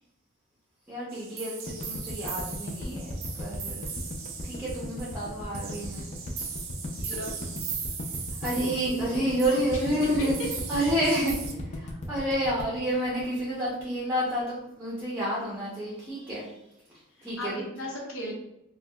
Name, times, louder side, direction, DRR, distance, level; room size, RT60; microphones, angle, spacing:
voice 1, 0.9-3.9 4.4-6.0 8.4-10.3 10.7-11.3 11.7-16.5 17.2-17.6, right 1 dB, 10° right, -6 dB, 0.7 m, -29 dB
sound 1, 1.1-11.5, right 6 dB, 65° right, 0.6 m, -39 dB
sound 2, 1.7-13.8, left 1 dB, 35° left, 0.4 m, -37 dB
voice 2, 7.0-7.6 9.7-10.5 17.4-18.3, equal, 70° left, -2 dB, 1.0 m, -36 dB
4.5 x 2.2 x 2.3 m, 0.87 s
head